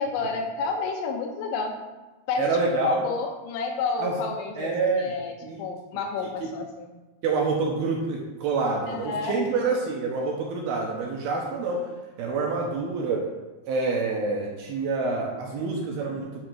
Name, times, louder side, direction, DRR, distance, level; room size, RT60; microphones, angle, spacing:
voice 1, 0.0-1.8 2.3-5.3 5.6-6.9 8.8-9.7, left 4 dB, 80° left, 2 dB, 3.3 m, -30 dB
voice 2, 2.4-3.0 4.0-4.2 4.6-5.1 5.4-5.6 6.4-6.5 7.2-11.9 12.2-13.2 13.6-16.4, right 4 dB, 75° right, -1 dB, 2.3 m, -27 dB
9.6 x 3.8 x 6.2 m, 1.1 s
omnidirectional pair, 5.5 m